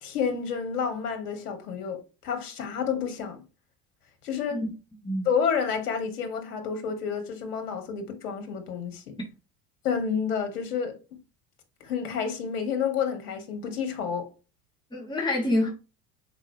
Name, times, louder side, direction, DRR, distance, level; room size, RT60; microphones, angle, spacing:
voice 1, 0.0-3.4 4.2-4.6 5.3-9.1 9.8-11.0 11.8-14.3, left 6 dB, 70° left, 1.8 m, -29 dB
voice 2, 14.9-15.7, left 1 dB, 10° left, 3.3 m, -26 dB
6.2 x 5.1 x 3.3 m
figure-of-eight pair, 70°, 47 cm